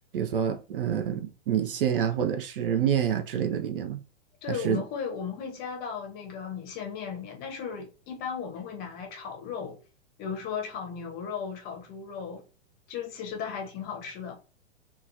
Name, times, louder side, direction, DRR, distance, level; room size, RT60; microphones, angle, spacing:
voice 1, 0.1-4.0 4.5-4.8, right 8 dB, 50° right, 0.5 m, -27 dB
voice 2, 4.4-9.8 10.2-12.4 12.9-14.3, left 6 dB, 25° left, 0.8 m, -36 dB
2.9 x 2.2 x 2.6 m
figure-of-eight pair, 105°, 35 cm